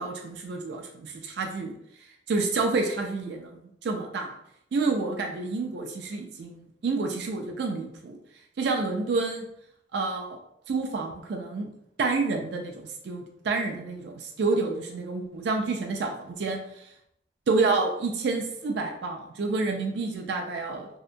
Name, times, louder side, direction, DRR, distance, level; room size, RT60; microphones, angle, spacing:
voice 1, 0.0-1.7 2.3-4.4 4.7-8.2 8.6-9.5 9.9-10.4 10.7-11.7 12.0-16.6 17.5-20.9, right 3 dB, 65° right, 2 dB, 0.4 m, -29 dB
2.7 x 2.2 x 2.5 m, 0.74 s
head